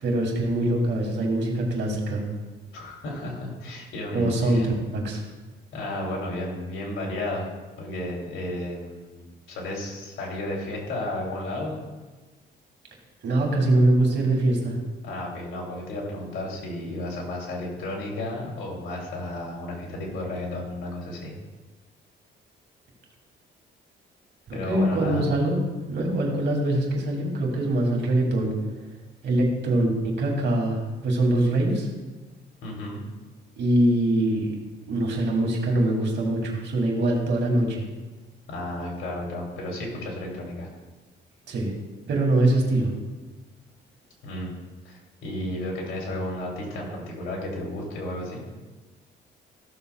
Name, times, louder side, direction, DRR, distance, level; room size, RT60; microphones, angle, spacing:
voice 1, 0.0-2.2 4.1-5.2 13.2-14.8 24.5-28.5 29.2-31.9 33.6-34.5 34.9-37.8 41.5-41.7 42.1-42.9, right 1 dB, 60° right, 0 dB, 2.6 m, -23 dB
voice 2, 2.7-4.7 5.7-7.5 7.8-11.8 15.0-21.3 24.5-25.2 32.6-33.0 38.5-40.7 44.2-44.5 44.8-44.9 45.2-48.4, left 1 dB, 80° left, -2 dB, 2.9 m, -33 dB
15.0 x 7.0 x 2.3 m, 1.2 s
cardioid pair, 90°, 20 cm